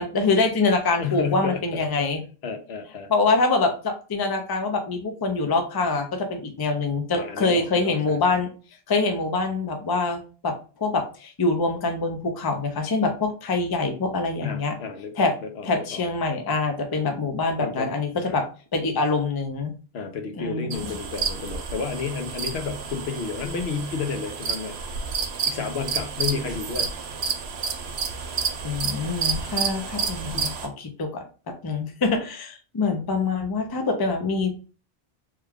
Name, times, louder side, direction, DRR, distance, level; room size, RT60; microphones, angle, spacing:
voice 1, 0.0-2.2 3.1-8.5 8.9-10.5 10.8-14.7 15.2-15.3 15.6-18.4 18.7-19.7 20.4-20.8 28.6-31.2 31.6-34.6, left 3 dB, 30° left, 5 dB, 0.4 m, -25 dB
voice 2, 1.0-2.1 2.4-3.1 7.1-8.4 14.4-16.0 17.6-17.9 18.3-18.4 19.9-24.8 25.5-26.9, left 5 dB, 80° left, 6 dB, 0.9 m, -31 dB
sound 1, 20.7-30.7, right 5 dB, 90° right, 0.9 m, -30 dB
3.2 x 2.2 x 3.4 m, 0.36 s
omnidirectional pair, 1.1 m